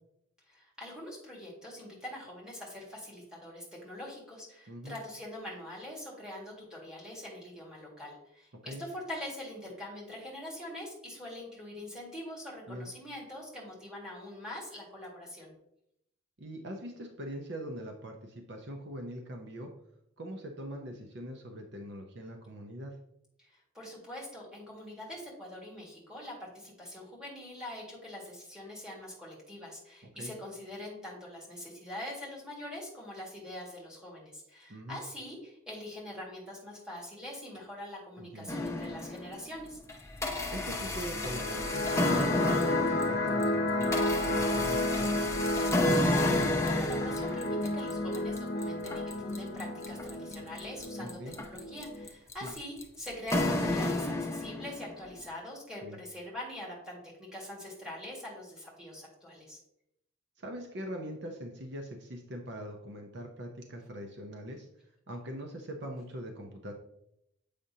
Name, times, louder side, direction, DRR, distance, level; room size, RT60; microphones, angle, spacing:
voice 1, 0.5-15.5 23.4-39.8 45.9-59.6, left 1 dB, 5° right, -5 dB, 1.8 m, -44 dB
voice 2, 4.7-5.0 8.6-8.8 12.7-12.9 16.4-19.7 20.2-22.9 30.2-30.3 34.7-35.0 38.2-38.5 40.5-45.2 51.0-51.4 52.4-52.5 55.8-56.0 60.4-64.7 65.1-66.7, equal, 55° right, 3 dB, 0.7 m, -42 dB
sound 1, 38.5-39.4 39.9-54.9, left 1 dB, 15° left, 0.7 m, -31 dB
sound 2, 41.1-52.1, left 2 dB, 50° left, 0.7 m, -32 dB
7.4 x 5.1 x 2.7 m, 0.79 s
head